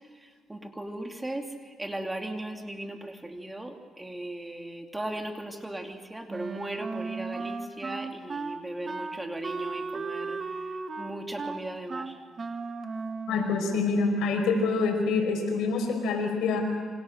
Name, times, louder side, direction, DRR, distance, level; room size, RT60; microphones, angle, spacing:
voice 1, 0.2-10.4 11.0-12.2, right 1 dB, 10° right, 3 dB, 2.8 m, -37 dB
Wind instrument woodwind instrument, 6.3-13.9, right 4 dB, 40° right, 1.9 m, -36 dB
voice 2, 13.3-16.6, left 4 dB, 85° left, 3 dB, 5.5 m, -26 dB
28.5 x 25.5 x 6.6 m, 1.5 s
cardioid pair, 90°, 0 cm